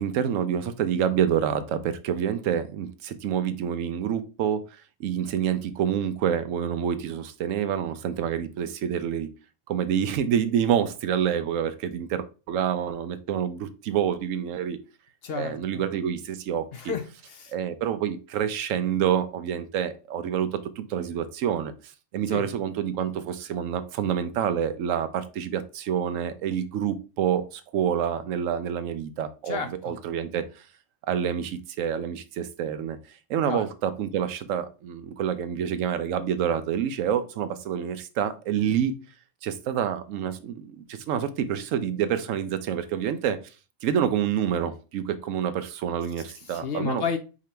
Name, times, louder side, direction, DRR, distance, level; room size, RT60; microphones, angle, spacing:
voice 1, 0.0-4.7 5.0-9.3 9.7-14.8 15.4-16.9 17.5-21.7 22.1-30.6 31.1-33.0 33.3-38.9 39.4-43.4 43.8-47.0, right 9 dB, 85° right, 1.0 m, -27 dB
voice 2, 15.2-15.6 16.7-17.5 22.3-22.5 29.5-29.9 33.5-33.7 46.5-47.2, left 6 dB, 60° left, 0.8 m, -31 dB
4.9 x 2.8 x 3.2 m
omnidirectional pair, 1.3 m